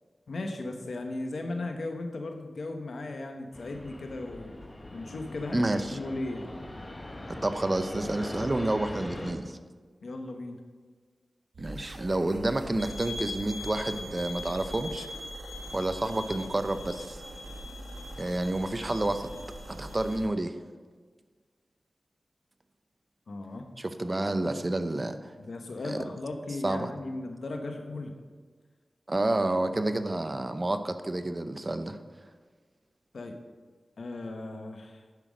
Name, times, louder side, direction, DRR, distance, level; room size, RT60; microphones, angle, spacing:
voice 1, 0.3-4.5 4.9-6.5 10.0-10.6 23.3-23.7 25.4-28.1 33.1-33.4 34.0-35.0, left 2 dB, 80° left, 4 dB, 1.1 m, -36 dB
Fixed-wing aircraft airplane, 3.5-9.3, left 1 dB, 30° left, 1.2 m, -41 dB
voice 2, 5.5-6.0 7.3-9.6 11.6-15.1 15.7-17.2 18.2-19.3 19.7-20.5 23.8-25.3 25.8-26.0 26.6-26.9 29.1-32.0, right 2 dB, 35° right, 9 dB, 0.7 m, -29 dB
sound 1, 11.5-20.3, right 1 dB, 80° right, 1.6 m, -44 dB
sound 2, 12.8-20.2, left 3 dB, 55° left, 1.4 m, -43 dB
10.5 x 6.0 x 5.1 m, 1.5 s
cardioid pair, 55°, 0 cm